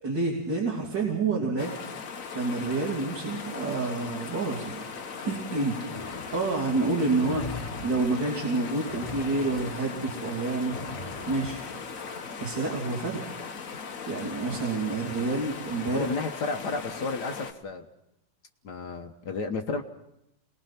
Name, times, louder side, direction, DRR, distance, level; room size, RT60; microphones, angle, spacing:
voice 1, 0.0-1.7 2.3-4.8 5.2-5.8 6.1-10.8 11.3-11.7 12.4-13.5 14.1-16.1, right 3 dB, 70° right, -3 dB, 3.6 m, -28 dB
sound 1, 1.6-17.5, left 5 dB, 50° left, 1.5 m, -39 dB
sound 2, 5.9-12.3, left 3 dB, 25° left, 1.2 m, -42 dB
voice 2, 15.9-17.9 18.6-19.8, left 3 dB, 65° left, 5 dB, 1.7 m, -32 dB
28.5 x 20.5 x 5.8 m, 0.82 s
omnidirectional pair, 2.0 m